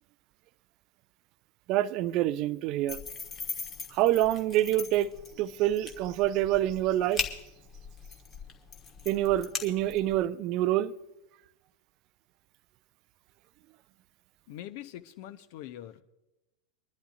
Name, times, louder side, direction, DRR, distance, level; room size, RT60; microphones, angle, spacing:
voice 1, 1.7-3.0 3.9-5.1 5.4-7.2 9.1-10.9, right 13 dB, 40° right, 0.4 m, -26 dB
sound 1, 2.9-10.3, left 5 dB, 25° left, 1.4 m, -40 dB
voice 2, 14.5-16.0, left 12 dB, 45° left, 0.8 m, -43 dB
24.5 x 11.5 x 2.5 m
figure-of-eight pair, 90°, 0 cm